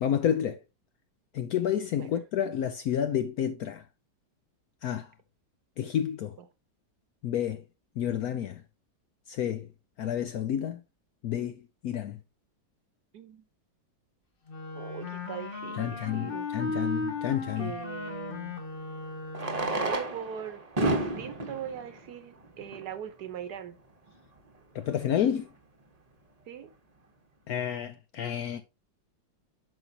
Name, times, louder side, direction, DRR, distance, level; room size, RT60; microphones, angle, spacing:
voice 1, 0.0-0.6 1.3-3.8 4.8-5.1 5.8-6.3 7.2-7.6 8.0-8.6 9.3-9.7 10.0-10.8 11.2-11.5 11.8-12.2 15.8-17.7 24.7-25.5 27.5-28.6, left 9 dB, 70° left, 0.9 m, -30 dB
voice 2, 13.1-13.4 14.7-16.5 17.6-18.5 19.6-23.8 26.5-26.7, right 9 dB, 65° right, 1.3 m, -40 dB
Wind instrument woodwind instrument, 14.5-19.8, left 3 dB, 40° left, 1.0 m, -36 dB
Fireworks, 15.7-15.8 18.1-18.2 19.3-23.0 23.8-23.9 24.1-24.2 24.4-24.5 25.0-25.2, right 2 dB, 25° right, 0.9 m, -32 dB
9.1 x 5.9 x 2.8 m
omnidirectional pair, 2.0 m